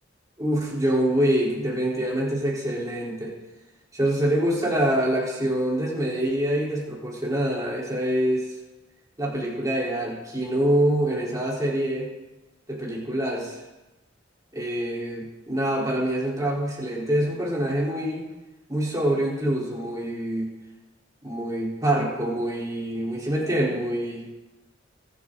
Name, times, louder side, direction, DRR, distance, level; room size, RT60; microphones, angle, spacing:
voice 1, 0.4-3.3 3.9-8.5 9.2-12.1 12.7-13.6 14.5-18.3 18.7-20.5 21.2-24.3, right 1 dB, 20° right, -4 dB, 4.2 m, -25 dB
24.5 x 10.5 x 4.0 m, 1.1 s
head